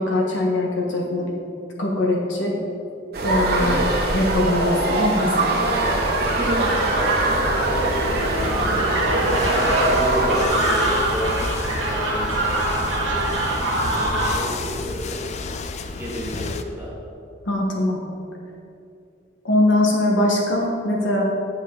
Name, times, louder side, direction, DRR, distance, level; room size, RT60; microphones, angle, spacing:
voice 1, 0.0-1.3 1.8-2.5 3.2-3.8 4.1-5.5 17.5-18.0 19.4-21.2, left 1 dB, 75° left, -2 dB, 1.4 m, -21 dB
sound 1, 3.1-10.4, right 2 dB, 50° right, 1.1 m, -22 dB
voice 2, 5.5-8.9 9.5-13.4 13.8-15.2 15.9-16.9, equal, 10° right, -6 dB, 1.6 m, -31 dB
sound 2, 5.6-14.4, right 2 dB, 80° right, 1.1 m, -24 dB
sound 3, 7.3-16.6, left 4 dB, 35° left, 0.3 m, -33 dB
7.8 x 7.3 x 3.9 m, 2.6 s
head